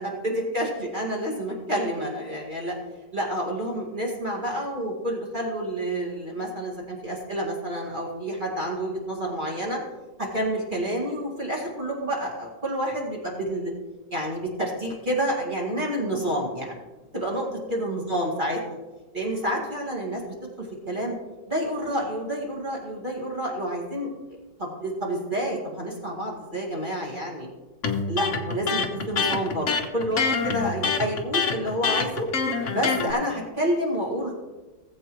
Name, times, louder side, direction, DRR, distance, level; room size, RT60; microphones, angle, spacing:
voice 1, 0.0-2.8 3.1-9.8 10.2-13.7 14.1-16.8 17.1-18.6 19.1-20.2 20.6-21.1 21.5-24.1 24.6-27.5 28.1-32.3 32.7-34.3, right 1 dB, 25° right, -3 dB, 2.1 m, -29 dB
Electric guitar, 27.8-33.1, left 5 dB, 50° left, 1.3 m, -25 dB
19.0 x 7.9 x 3.1 m, 1.2 s
omnidirectional pair, 1.9 m